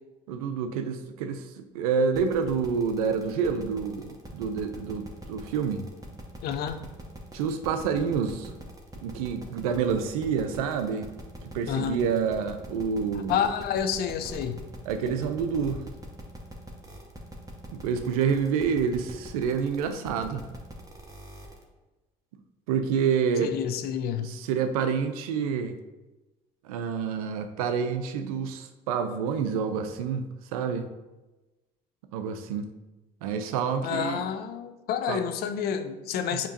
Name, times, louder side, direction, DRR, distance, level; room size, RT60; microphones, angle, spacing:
voice 1, 0.3-5.9 7.3-8.6 9.0-11.1 11.4-13.4 14.9-15.8 17.7-20.4 22.7-23.5 24.2-25.7 26.6-30.9 32.1-32.7 33.2-34.3 35.1-35.2, right 6 dB, 85° right, 8 dB, 0.4 m, -28 dB
sound 1, 2.1-21.6, right 1 dB, 20° right, 1.1 m, -43 dB
voice 2, 6.4-6.9 11.7-12.0 13.3-14.6 23.4-24.3 33.8-36.5, left 8 dB, 60° left, 9 dB, 0.5 m, -29 dB
6.8 x 2.9 x 2.6 m, 1.1 s
hypercardioid pair, 65°, 18 cm